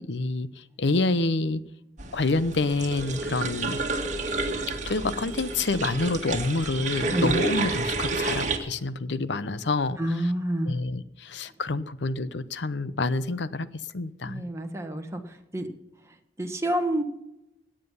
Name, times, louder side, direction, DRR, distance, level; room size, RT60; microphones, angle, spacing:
voice 1, 0.0-1.6 2.1-3.8 4.9-10.0 10.7-13.7 13.9-14.4, left 3 dB, 75° left, 15 dB, 0.8 m, -27 dB
sound 1, 2.0-8.6, right 3 dB, 40° right, 1.9 m, -30 dB
voice 2, 10.0-10.7 14.2-15.7 16.4-17.0, right 1 dB, 15° right, 4 dB, 1.5 m, -28 dB
17.5 x 10.0 x 5.6 m, 0.89 s
head